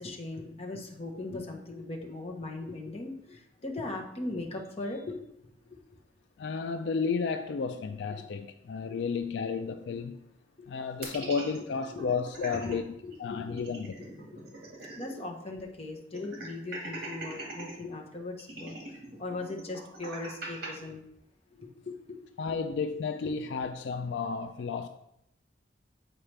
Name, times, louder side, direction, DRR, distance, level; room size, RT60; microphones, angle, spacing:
voice 1, 0.0-5.2 5.7-5.8 8.9-9.0 10.6-10.7 11.2-11.3 11.9-12.1 12.4-14.1 14.9-18.9 19.2-21.0 21.5-22.0, left 2 dB, 35° left, 1.1 m, -39 dB
voice 2, 6.4-10.2 10.7-12.9 13.2-13.9 22.4-24.9, left 5 dB, 75° left, 0.3 m, -32 dB
sound 1, 11.0-12.7 13.1-13.2 13.5-15.3 15.5-15.6 16.1-17.7 18.4-20.7, right 2 dB, 60° right, 1.9 m, -41 dB
8.7 x 4.8 x 3.3 m
head